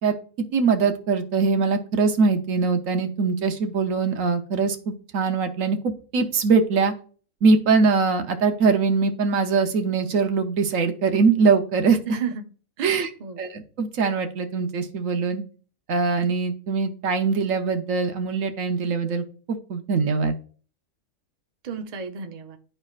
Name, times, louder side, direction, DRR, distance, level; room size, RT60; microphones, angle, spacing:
voice 1, 0.0-6.9 7.4-12.2 12.8-13.1 13.4-15.4 15.9-20.3, right 4 dB, 70° right, 6 dB, 1.2 m, -22 dB
voice 2, 12.1-12.4 12.8-13.4 21.6-22.6, right 6 dB, 40° right, 5 dB, 0.6 m, -33 dB
11.0 x 4.5 x 2.4 m, 0.41 s
omnidirectional pair, 1.4 m